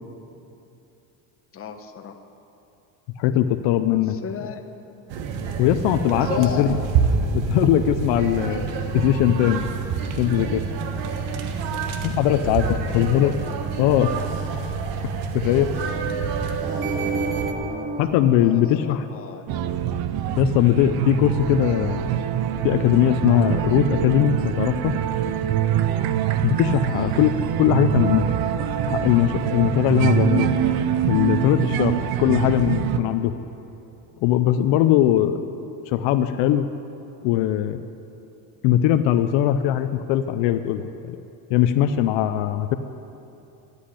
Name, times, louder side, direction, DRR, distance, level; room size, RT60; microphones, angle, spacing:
voice 1, 1.5-2.2 4.1-5.0 6.1-6.8 11.7-11.9 12.4-12.9 17.7-18.0 18.4-19.5 26.9-27.1, left 7 dB, 30° left, 5 dB, 1.1 m, -35 dB
voice 2, 3.2-4.2 5.6-6.7 7.3-8.7 8.9-9.7 10.2-10.6 12.0-12.6 12.9-13.3 13.8-14.3 15.3-15.7 18.0-19.1 20.4-22.1 22.6-24.9 26.4-27.3 27.6-28.2 28.9-30.5 31.0-33.3 34.2-35.4 35.9-36.7 37.2-37.8 38.6-41.2 41.5-42.8, left 11 dB, 75° left, 10 dB, 0.7 m, -20 dB
sound 1, 5.1-17.5, right 5 dB, 75° right, 1.4 m, -27 dB
sound 2, 16.6-19.6, right 3 dB, 20° right, 0.5 m, -31 dB
sound 3, 19.5-33.0, right 10 dB, 55° right, 0.8 m, -24 dB
13.0 x 8.2 x 9.9 m, 2.8 s
cardioid pair, 135°, 44 cm